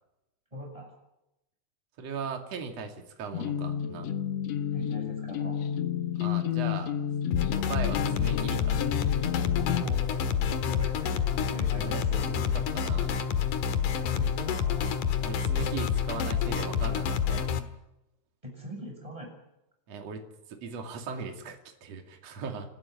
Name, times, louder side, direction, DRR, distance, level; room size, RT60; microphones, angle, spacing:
voice 1, 0.5-0.9 4.7-5.6 9.6-10.2 10.6-11.2 11.5-12.0 14.0-15.0 18.4-19.3, equal, 10° right, 1 dB, 7.5 m, -40 dB
voice 2, 2.0-4.1 6.2-6.9 7.5-8.8 11.7-13.2 15.2-17.5 19.9-20.2 20.5-22.7, right 5 dB, 45° right, 4 dB, 3.4 m, -38 dB
sound 1, 3.3-9.8, left 9 dB, 80° left, 1.5 m, -31 dB
sound 2, 7.3-17.6, left 7 dB, 60° left, 2.7 m, -28 dB
29.0 x 12.5 x 9.9 m, 0.89 s
omnidirectional pair, 4.5 m